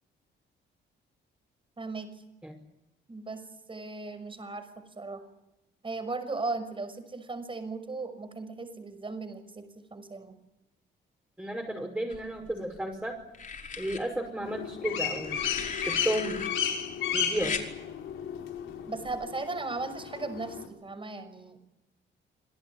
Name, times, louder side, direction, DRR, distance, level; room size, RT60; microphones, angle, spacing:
voice 1, 1.8-2.1 3.1-3.4 3.7-4.7 5.0-5.2 5.8-10.3 18.9-21.6, right 3 dB, 25° right, 10 dB, 6.0 m, -37 dB
voice 2, 11.4-13.1 13.8-15.4 15.9-16.4 17.1-17.6, right 1 dB, 5° right, 1 dB, 5.6 m, -33 dB
sound 1, 12.1-12.8 13.3-14.0 15.2-16.5 17.4-17.7 19.0-19.3, left 5 dB, 40° left, 5.3 m, -37 dB
sound 2, 14.4-20.6, left 8 dB, 80° left, 4.6 m, -33 dB
27.5 x 18.0 x 9.8 m, 0.94 s
cardioid pair, 90°, 20 cm